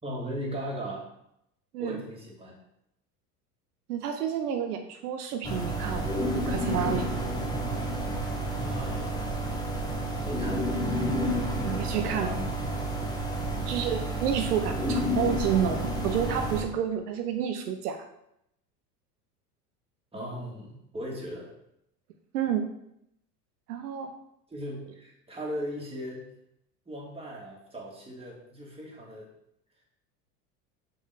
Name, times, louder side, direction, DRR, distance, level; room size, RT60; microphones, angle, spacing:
voice 1, 0.0-1.0 1.8-2.6 8.6-9.3 10.2-10.7 11.9-12.4 20.1-21.5 24.5-26.3 26.9-29.3, equal, 10° right, -2 dB, 2.1 m, -38 dB
voice 2, 3.9-7.1 11.6-12.4 13.7-18.0 22.3-22.7 23.7-24.1, right 8 dB, 75° right, 6 dB, 0.8 m, -30 dB
sound 1, 5.4-16.6, right 1 dB, 10° left, 1.4 m, -30 dB
6.2 x 5.5 x 3.4 m, 0.78 s
hypercardioid pair, 80°, 47 cm